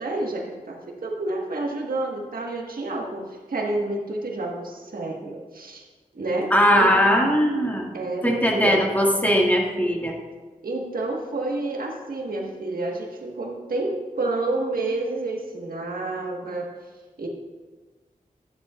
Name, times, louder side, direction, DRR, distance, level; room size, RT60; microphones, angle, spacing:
voice 1, 0.0-5.8 6.1-7.0 7.9-8.8 10.6-16.7 17.2-17.3, right 2 dB, 80° right, -1 dB, 1.5 m, -29 dB
voice 2, 6.5-7.9 8.2-10.2, equal, 10° left, -1 dB, 1.9 m, -20 dB
12.5 x 10.5 x 2.4 m, 1.3 s
wide cardioid pair, 60°, 15 cm